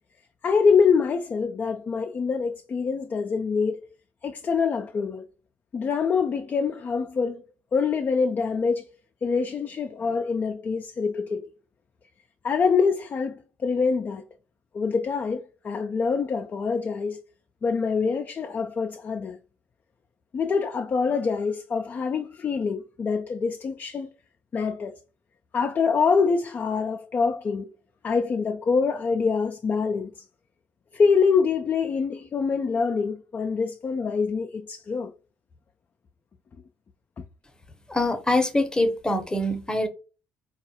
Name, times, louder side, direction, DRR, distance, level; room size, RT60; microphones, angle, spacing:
voice 1, 0.4-3.8 4.2-5.3 5.7-7.4 7.7-8.8 9.2-11.5 12.4-14.2 14.7-17.2 17.6-19.4 20.3-24.1 24.5-24.9 25.5-27.7 28.0-30.2 30.9-35.1 37.2-37.3, left 5 dB, 35° left, 0.3 m, -25 dB
voice 2, 37.9-39.9, left 1 dB, 15° left, 0.7 m, -24 dB
3.9 x 2.3 x 2.7 m
hypercardioid pair, 55°, 6 cm